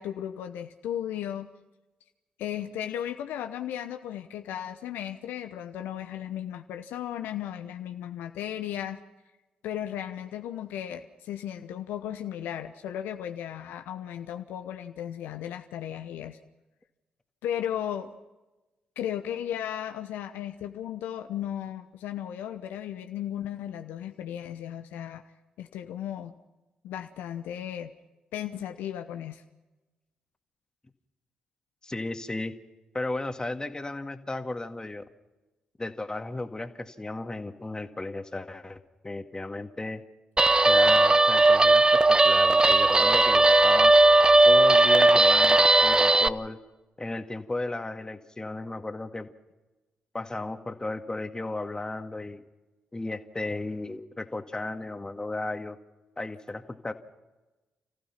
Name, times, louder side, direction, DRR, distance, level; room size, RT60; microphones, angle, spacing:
voice 1, 0.0-1.5 2.4-9.0 9.6-16.4 17.4-18.1 19.0-25.2 25.6-26.3 26.8-27.9 28.3-29.4, left 10 dB, 75° left, 7 dB, 0.9 m, -35 dB
voice 2, 31.8-32.5 32.9-35.0 35.8-40.0 40.6-43.9 44.4-46.6 47.0-49.3 50.1-52.4 52.9-55.8 56.2-56.9, left 2 dB, 20° left, 7 dB, 2.0 m, -35 dB
Guitar, 40.4-46.3, right 2 dB, 25° right, 0.9 m, -18 dB
29.5 x 15.5 x 5.9 m, 1.1 s
hypercardioid pair, 40°, 3 cm